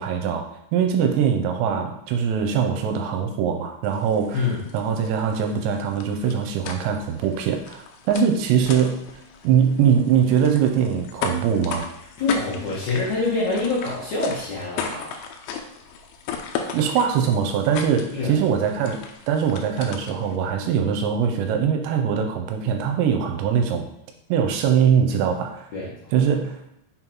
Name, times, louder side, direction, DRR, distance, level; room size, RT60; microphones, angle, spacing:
voice 1, 0.0-4.4 4.7-9.0 9.4-11.9 16.7-19.0 19.3-23.9 24.3-25.7 26.1-26.6, right 7 dB, 85° right, 4 dB, 2.9 m, -22 dB
sound 1, 3.8-20.4, left 6 dB, 80° left, 2.6 m, -36 dB
voice 2, 4.3-4.7 12.2-15.2 18.1-18.4 25.7-26.1, left 3 dB, 65° left, -7 dB, 1.9 m, -26 dB
6.4 x 4.0 x 4.4 m, 0.79 s
omnidirectional pair, 5.1 m